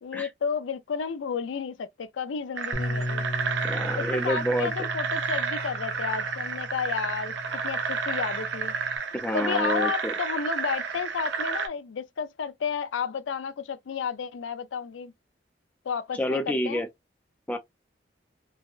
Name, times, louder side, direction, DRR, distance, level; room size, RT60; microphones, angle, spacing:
voice 1, 0.0-3.2 4.0-8.7 9.3-15.1 15.9-16.8, left 6 dB, 90° left, 0.4 m, -32 dB
sound 1, 2.6-11.7, right 5 dB, 80° right, 0.6 m, -31 dB
Bass guitar, 2.7-9.0, left 1 dB, 40° left, 0.9 m, -36 dB
voice 2, 3.6-4.7 9.1-10.1 16.1-16.9 17.5-17.6, equal, 10° left, 0.4 m, -28 dB
3.3 x 2.1 x 2.3 m
head